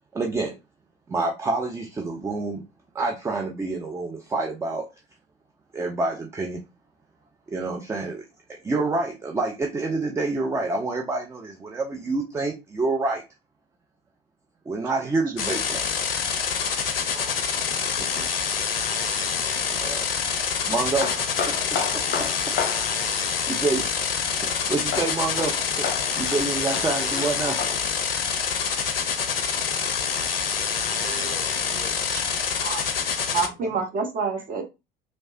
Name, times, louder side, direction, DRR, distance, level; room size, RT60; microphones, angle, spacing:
voice 1, 0.1-0.6 1.1-2.6 2.9-4.9 5.7-6.6 7.5-8.2 8.5-13.2 14.7-15.8 19.8-20.1 20.7-21.1 21.5-22.5 23.2-24.2 24.4-25.9 26.2-27.6, right 3 dB, 10° right, 0.4 m, -28 dB
sound 1, 15.4-33.5, left 6 dB, 75° left, 0.5 m, -26 dB
voice 2, 17.7-18.3 19.3-19.5 32.1-32.2 32.6-32.8 33.3-34.6, right 5 dB, 30° right, 0.8 m, -29 dB
sound 2, 20.8-27.8, left 6 dB, 35° left, 0.7 m, -33 dB
voice 3, 30.6-33.1 33.4-33.8, right 4 dB, 65° right, 1.2 m, -44 dB
3.1 x 2.1 x 2.6 m
figure-of-eight pair, 65°, 29 cm